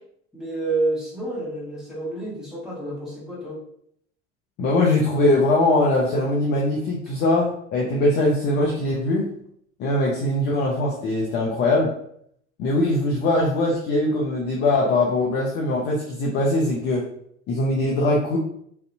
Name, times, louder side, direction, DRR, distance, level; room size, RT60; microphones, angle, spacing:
voice 1, 0.3-3.6, right 2 dB, ahead, -7 dB, 1.1 m, -29 dB
voice 2, 4.6-9.3 9.8-11.9 12.6-17.1 17.5-18.4, left 2 dB, 30° left, -3 dB, 0.4 m, -21 dB
2.5 x 2.1 x 2.5 m, 0.69 s
figure-of-eight pair, 65°, 34 cm